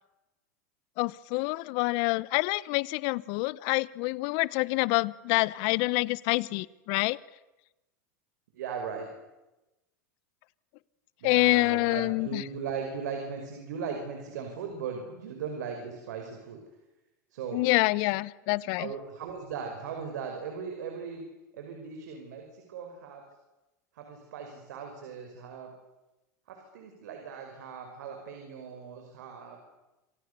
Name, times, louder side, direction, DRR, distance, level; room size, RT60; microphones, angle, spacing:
voice 1, 1.0-7.2 11.2-12.4 17.5-18.9, left 23 dB, 60° left, 20 dB, 1.1 m, -27 dB
voice 2, 8.5-9.1 11.2-16.6 17.3-17.6 18.8-21.2 21.5-23.2 24.0-25.7 26.5-29.6, right 6 dB, 75° right, 4 dB, 5.8 m, -38 dB
27.0 x 26.5 x 7.0 m, 1.0 s
hypercardioid pair, 100°, 9 cm